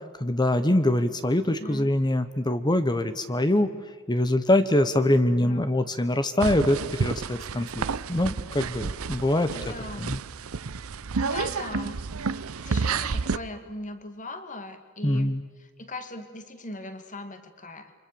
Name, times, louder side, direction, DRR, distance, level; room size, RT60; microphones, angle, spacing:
voice 1, 0.2-3.8 4.1-7.8 8.1-9.5 10.0-10.2 15.0-15.4, left 1 dB, 20° left, 11 dB, 1.0 m, -24 dB
voice 2, 1.5-1.9 5.4-5.7 9.5-10.2 11.2-17.9, left 2 dB, 35° left, 8 dB, 2.5 m, -39 dB
sound 1, 6.4-13.4, right 5 dB, 75° right, 0.7 m, -30 dB
29.5 x 25.0 x 7.0 m, 1.5 s
head